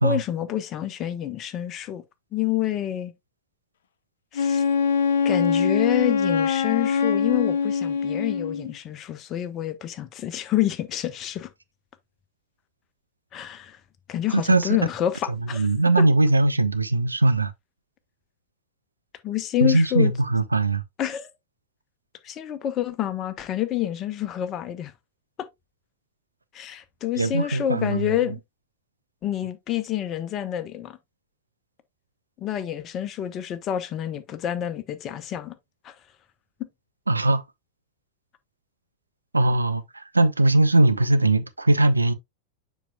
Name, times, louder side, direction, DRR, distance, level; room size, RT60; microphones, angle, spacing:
voice 1, 0.0-2.0 2.3-3.1 4.3-4.6 5.2-11.5 13.3-13.8 14.1-15.7 16.0-16.1 19.2-20.1 21.0-21.3 22.2-24.9 26.5-28.4 29.2-31.0 32.4-35.5 35.8-35.9, left 12 dB, 30° left, 0.9 m, -28 dB
Wind instrument woodwind instrument, 4.3-8.7, left 6 dB, 60° left, 0.6 m, -23 dB
voice 2, 14.3-14.7 15.5-17.5 19.6-20.8 27.2-28.1 37.1-37.4 39.3-42.1, right 2 dB, 80° right, 0.5 m, -20 dB
7.2 x 5.8 x 2.3 m
figure-of-eight pair, 90°, 0 cm